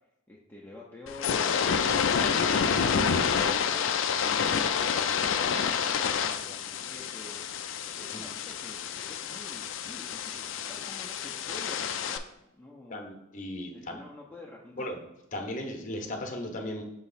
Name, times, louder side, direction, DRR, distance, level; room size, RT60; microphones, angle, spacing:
voice 1, 0.3-1.3 1.9-7.4 7.9-13.1 13.7-14.9, left 1 dB, 10° left, -4 dB, 0.6 m, -48 dB
sound 1, 1.1-12.2, left 7 dB, 60° left, 0.4 m, -28 dB
voice 2, 12.9-14.0 14.8-15.0 15.3-16.8, left 1 dB, 40° left, 3 dB, 0.9 m, -36 dB
5.6 x 3.1 x 5.6 m, 0.86 s
head